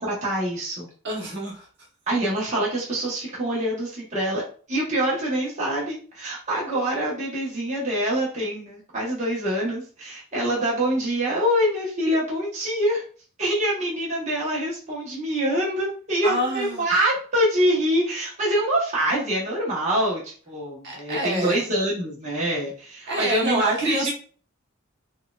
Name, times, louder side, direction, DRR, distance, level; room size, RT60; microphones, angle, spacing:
voice 1, 0.0-0.9 2.1-13.0 13.4-24.1, right 1 dB, 35° right, -6 dB, 1.0 m, -25 dB
voice 2, 1.0-1.7 16.2-16.9 20.8-21.6 23.1-24.1, right 1 dB, 55° right, -3 dB, 1.1 m, -27 dB
4.2 x 2.4 x 2.3 m, 0.41 s
head